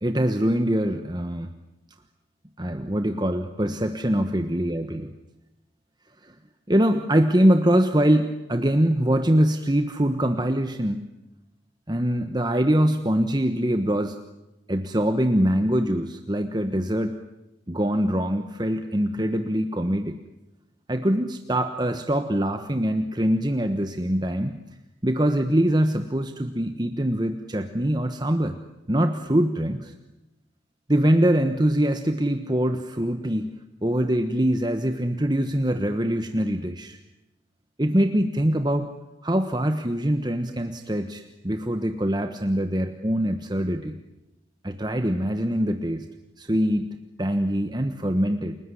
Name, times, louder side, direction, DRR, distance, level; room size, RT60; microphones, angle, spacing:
voice 1, 0.0-1.5 2.6-5.1 6.2-6.3 6.7-11.1 11.9-14.2 14.7-17.2 17.7-20.2 20.9-24.6 25.0-28.6 28.9-29.9 30.9-33.5 33.8-37.0 37.8-38.9 39.2-43.9 44.6-46.0 46.4-48.6, equal, 20° right, 7 dB, 1.2 m, -23 dB
30.0 x 20.0 x 9.9 m, 0.96 s
head